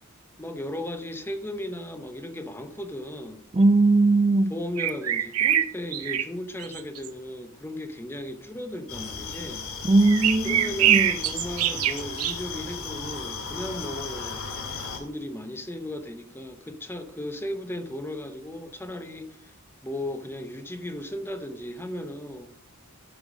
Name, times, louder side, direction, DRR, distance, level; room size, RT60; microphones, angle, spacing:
voice 1, 0.4-3.4 4.5-9.6 10.4-14.5 14.9-19.5 19.8-22.5, left 1 dB, 10° left, 0.8 m, -36 dB
voice 2, 3.5-4.5 9.9-11.1, right 2 dB, 25° right, 0.4 m, -20 dB
sound 1, 4.8-6.2 6.6-7.1 10.0-12.3, right 11 dB, 80° right, 0.8 m, -24 dB
sound 2, 8.9-15.0, left 5 dB, 70° left, 2.1 m, -35 dB
9.8 x 7.0 x 5.2 m
head